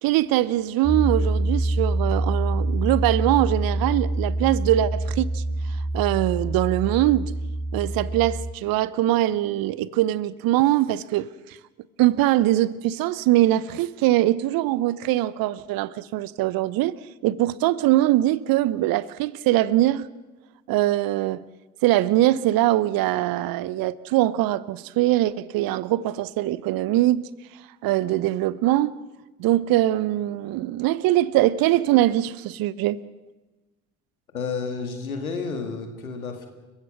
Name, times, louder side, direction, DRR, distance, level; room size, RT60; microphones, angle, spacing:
voice 1, 0.0-5.4 5.9-7.3 7.7-11.3 12.0-20.1 20.7-21.4 21.8-27.2 27.8-29.0 29.4-33.0, right 15 dB, 55° right, 0.9 m, -22 dB
Piano, 0.8-8.5, right 1 dB, 20° right, 3.3 m, -26 dB
voice 2, 34.3-36.5, left 5 dB, 90° left, 2.2 m, -31 dB
29.5 x 15.5 x 6.1 m
figure-of-eight pair, 55°, 41 cm